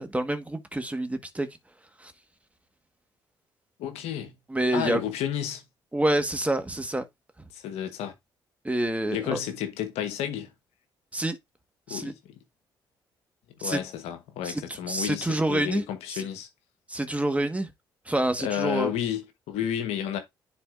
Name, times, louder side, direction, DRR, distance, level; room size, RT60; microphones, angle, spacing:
voice 1, 0.0-1.5 2.0-2.1 4.5-5.0 5.9-7.0 8.6-9.4 11.1-11.4 11.9-12.1 13.6-13.8 14.4-15.8 16.1-16.2 16.9-17.7 18.1-18.9, right 1 dB, 10° right, 1.4 m, -27 dB
voice 2, 3.8-4.3 4.7-5.6 7.5-8.1 9.1-10.5 11.9-12.2 13.6-16.5 18.4-20.2, left 10 dB, 75° left, 1.2 m, -31 dB
10.0 x 4.2 x 2.5 m
hypercardioid pair, 50°, 11 cm